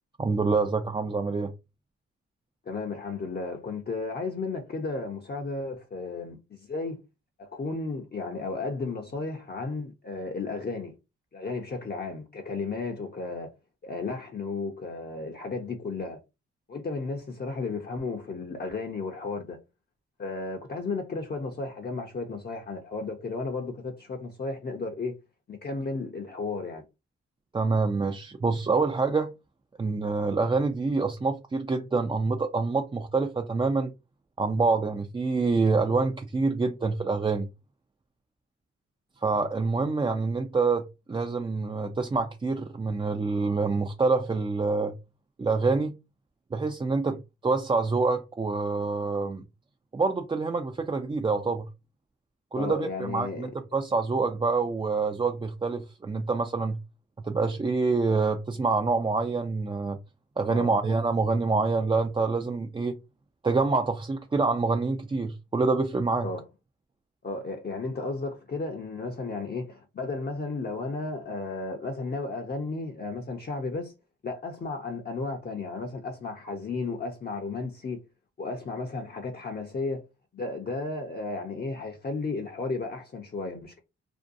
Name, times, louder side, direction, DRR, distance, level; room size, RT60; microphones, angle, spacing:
voice 1, 0.2-1.5 27.5-29.3 29.8-33.9 34.4-37.5 39.2-45.0 45.4-45.9 46.5-49.4 49.9-51.7 52.5-56.8 57.2-60.0 60.4-62.9 63.4-66.3, right 4 dB, 20° right, 0.3 m, -26 dB
voice 2, 2.7-7.0 7.4-11.0 11.3-13.5 13.8-16.2 16.7-19.6 20.2-25.1 25.5-26.8 52.6-53.5 60.5-60.7 66.2-66.4 67.2-73.9 74.2-78.0 78.4-80.0 80.3-83.8, left 3 dB, 35° left, 0.6 m, -34 dB
2.6 x 2.2 x 2.5 m
cardioid pair, 55°, 29 cm